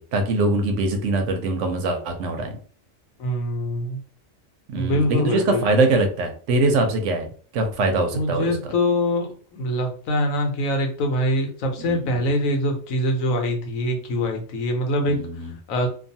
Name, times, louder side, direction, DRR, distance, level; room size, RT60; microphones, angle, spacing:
voice 1, 0.0-2.5 4.7-7.3 7.5-8.6 11.8-12.2 15.1-15.5, right 2 dB, 70° right, 5 dB, 0.9 m, -23 dB
voice 2, 3.2-4.0 4.8-5.6 8.1-15.2 15.7-15.9, left 1 dB, 80° left, 3 dB, 1.1 m, -24 dB
2.5 x 2.3 x 2.6 m, 0.43 s
omnidirectional pair, 1.4 m